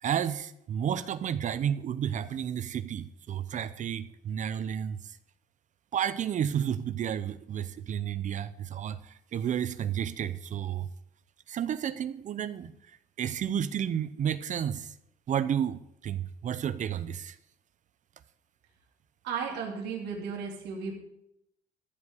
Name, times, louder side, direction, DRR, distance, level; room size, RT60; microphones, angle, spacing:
voice 1, 0.0-5.2 5.9-10.9 11.5-12.7 13.2-14.9 15.3-17.4, right 9 dB, 45° right, 0.7 m, -31 dB
voice 2, 19.2-20.9, right 6 dB, 80° right, 3.4 m, -34 dB
15.0 x 5.2 x 8.2 m
cardioid pair, 110°, 17 cm